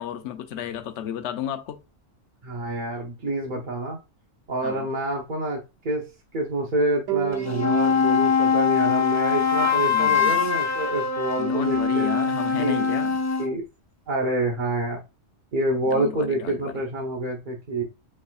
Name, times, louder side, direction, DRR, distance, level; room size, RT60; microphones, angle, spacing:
voice 1, 0.0-1.8 3.5-3.7 4.6-4.9 9.6-10.4 11.4-13.2 15.8-16.7, left 10 dB, 70° left, 0.9 m, -33 dB
voice 2, 2.4-4.0 4.5-6.1 6.3-12.1 12.6-12.9 13.4-13.6 14.1-15.0 15.5-17.8, right 2 dB, 45° right, 0.9 m, -27 dB
sound 1, 7.1-10.3, right 20 dB, 85° right, 1.1 m, -35 dB
sound 2, 7.3-13.5, left 5 dB, 25° left, 0.4 m, -22 dB
5.3 x 3.3 x 2.3 m
omnidirectional pair, 1.3 m